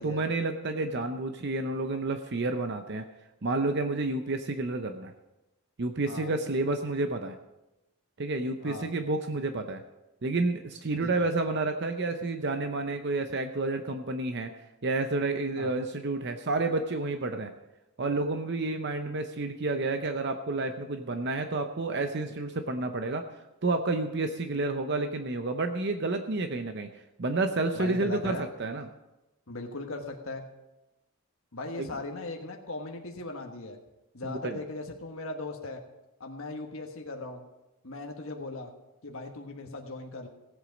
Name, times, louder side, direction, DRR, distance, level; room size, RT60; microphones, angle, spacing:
voice 1, 0.0-3.0 3.4-5.1 5.8-7.3 8.2-9.8 10.2-14.5 14.8-17.5 18.0-23.2 23.6-26.9 27.2-28.9 31.8-31.9 34.2-34.6, right 2 dB, 50° right, 7 dB, 0.7 m, -30 dB
voice 2, 6.1-6.4 8.6-8.9 11.0-11.3 15.6-15.7 27.7-28.4 29.5-30.5 31.5-33.8 34.1-35.8 36.2-37.4 37.8-38.7 39.0-40.3, left 2 dB, 65° left, 2 dB, 1.4 m, -38 dB
17.0 x 8.1 x 5.2 m, 0.98 s
head